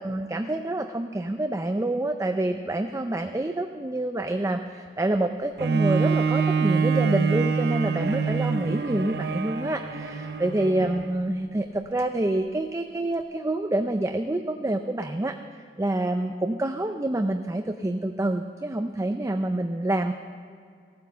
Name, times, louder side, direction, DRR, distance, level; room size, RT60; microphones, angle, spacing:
voice 1, 0.0-15.4 15.8-20.1, right 1 dB, 15° right, 6 dB, 0.4 m, -27 dB
Bowed string instrument, 5.6-11.2 11.9-12.0, right 5 dB, 65° right, 0.8 m, -25 dB
15.0 x 9.1 x 6.8 m, 2.2 s
head